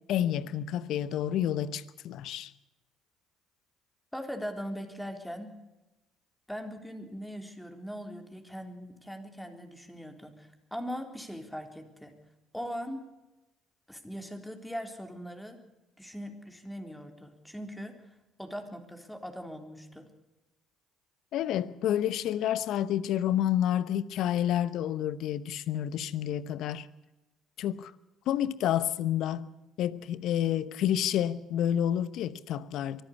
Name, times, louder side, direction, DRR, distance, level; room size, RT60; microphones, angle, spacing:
voice 1, 0.1-2.5 21.3-26.9 27.6-27.9 28.3-29.5 29.8-33.0, left 11 dB, 65° left, 1.0 m, -29 dB
voice 2, 4.1-5.6 6.5-12.1 12.5-13.1 13.9-15.6 16.0-20.1, equal, 5° left, 3.8 m, -40 dB
24.0 x 14.0 x 8.5 m
hypercardioid pair, 55°, 0 cm